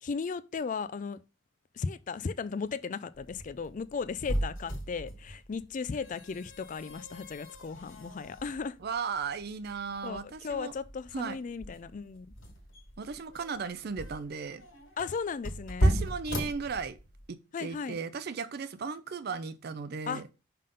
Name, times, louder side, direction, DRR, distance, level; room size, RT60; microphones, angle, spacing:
voice 1, 0.0-1.2 1.7-8.8 10.0-12.3 15.0-16.0 17.5-18.0 20.1-20.2, left 5 dB, 40° left, 0.4 m, -36 dB
sound 1, 3.1-17.3, equal, 75° left, 2.3 m, -36 dB
voice 2, 8.8-10.7 11.1-11.4 13.0-14.6 15.8-17.0 17.3-20.3, right 5 dB, 50° right, 0.4 m, -36 dB
5.6 x 3.7 x 5.2 m
head